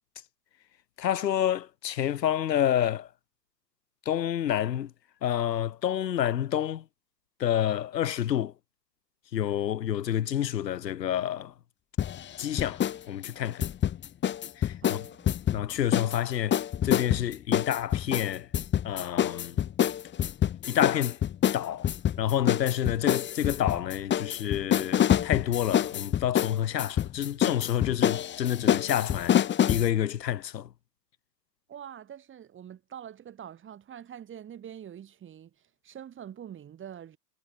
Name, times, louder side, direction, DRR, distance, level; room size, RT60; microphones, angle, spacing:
voice 1, 1.0-3.1 4.1-4.9 5.2-6.8 7.4-8.5 9.3-11.5 12.4-13.7 14.6-15.0 15.5-18.5 18.8-19.6 20.7-21.2 21.5-21.9 22.2-29.4 29.7-30.7, left 10 dB, 75° left, 1.8 m, -28 dB
sound 1, 12.0-13.0 13.2-16.2 16.5-29.9, left 10 dB, 20° left, 1.9 m, -26 dB
voice 2, 14.7-15.2 31.7-35.5 35.8-37.2, right 9 dB, 25° right, 4.5 m, -45 dB
hypercardioid pair, 110°, 50 cm